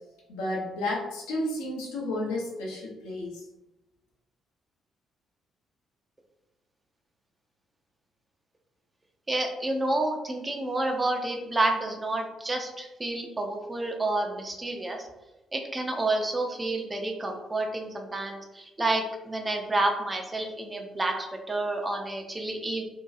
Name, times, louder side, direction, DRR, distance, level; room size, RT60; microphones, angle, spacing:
voice 1, 0.3-3.3, left 1 dB, 70° left, -3 dB, 0.6 m, -32 dB
voice 2, 9.3-15.1 15.5-22.8, right 2 dB, 20° right, 2 dB, 0.5 m, -29 dB
2.7 x 2.2 x 2.4 m, 0.98 s
figure-of-eight pair, 40°, 0 cm